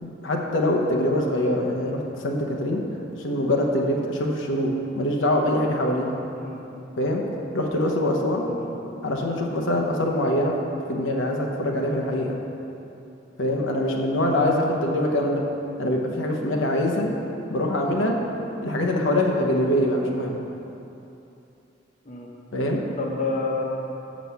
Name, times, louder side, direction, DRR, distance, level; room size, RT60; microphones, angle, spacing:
voice 1, 0.0-2.8 3.2-6.2 7.0-7.2 7.5-8.5 9.0-10.5 10.9-12.3 13.4-15.4 15.8-17.1 17.5-18.2 18.6-20.4 22.5-22.8, left 1 dB, 85° left, 0 dB, 0.9 m, -24 dB
voice 2, 6.3-6.6 8.4-8.7 14.1-14.4 22.0-22.3 23.0-23.6, left 3 dB, 40° left, -1 dB, 0.9 m, -30 dB
6.2 x 6.1 x 6.9 m, 2.9 s
head